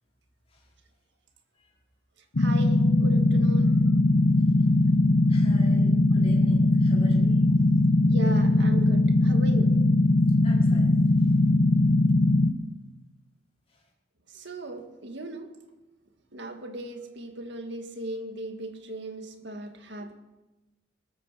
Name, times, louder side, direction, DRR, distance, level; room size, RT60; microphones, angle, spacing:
sound 1, 2.4-12.5, left 2 dB, 60° left, 1.0 m, -20 dB
voice 1, 2.4-3.7 8.1-9.7 14.3-15.6 16.3-20.1, right 1 dB, 60° right, 5 dB, 2.0 m, -37 dB
voice 2, 5.3-7.4 10.4-10.9, equal, 30° left, -4 dB, 4.8 m, -45 dB
21.0 x 13.5 x 5.1 m, 1.0 s
head